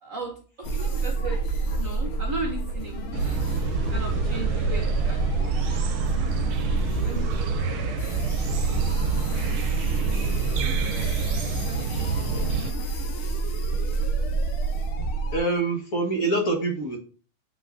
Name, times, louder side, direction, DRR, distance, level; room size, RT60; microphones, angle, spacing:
voice 1, 0.0-0.3 0.7-1.4 1.8-3.4 3.9-5.5 6.2-6.3 6.9-7.4 8.5-8.8 9.1-9.2 10.3-12.6, right 2 dB, 50° right, 1 dB, 1.2 m, -37 dB
sound 1, 0.6-15.4, right 3 dB, 70° left, 1.8 m, -28 dB
sound 2, 2.9-15.6, left 7 dB, 85° left, 1.6 m, -43 dB
sound 3, 3.1-12.7, right 5 dB, 75° right, 1.5 m, -29 dB
voice 2, 15.0-17.0, right 2 dB, 40° left, 1 dB, 1.7 m, -26 dB
8.0 x 5.9 x 2.6 m, 0.39 s
omnidirectional pair, 2.3 m